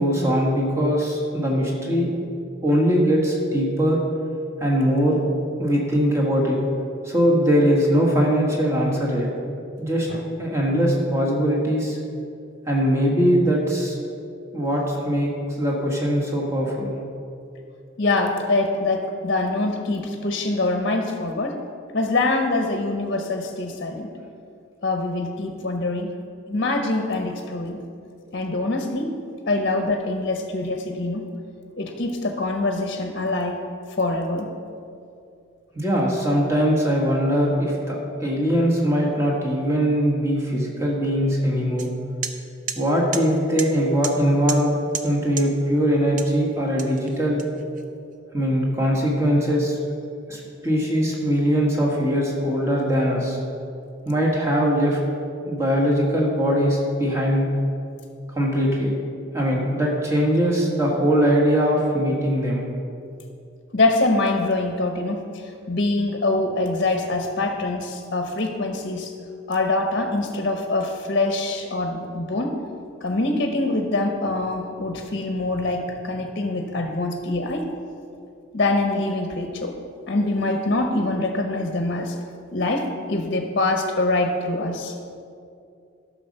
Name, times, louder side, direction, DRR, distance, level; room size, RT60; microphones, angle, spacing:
voice 1, 0.0-2.1 2.6-4.0 4.6-5.2 5.6-6.6 7.0-9.3 9.8-10.1 10.4-12.0 12.7-14.0 14.5-15.3 15.6-16.9 35.8-41.9 42.8-44.7 45.0-47.4 48.3-49.8 50.3-53.4 54.1-55.0 55.5-57.5 58.3-58.9 59.3-62.6, equal, 15° right, -3 dB, 1.7 m, -21 dB
voice 2, 18.0-21.6 21.9-24.1 24.8-26.1 26.5-27.8 28.3-29.1 29.4-31.3 31.8-33.6 34.0-34.5 63.7-69.1 69.5-72.6 73.0-77.7 78.5-79.7 80.1-82.2 82.5-85.0, left 2 dB, 50° left, 4 dB, 0.8 m, -24 dB
sound 1, 41.8-41.9 42.2-42.3 42.7-42.8 43.1-43.2 43.6-43.7 44.0-44.1 44.5-44.6 44.9-45.1 45.4-45.5 46.2-46.4 46.8-47.8, right 7 dB, 40° right, 0.6 m, -30 dB
12.5 x 6.4 x 5.5 m, 2.5 s
head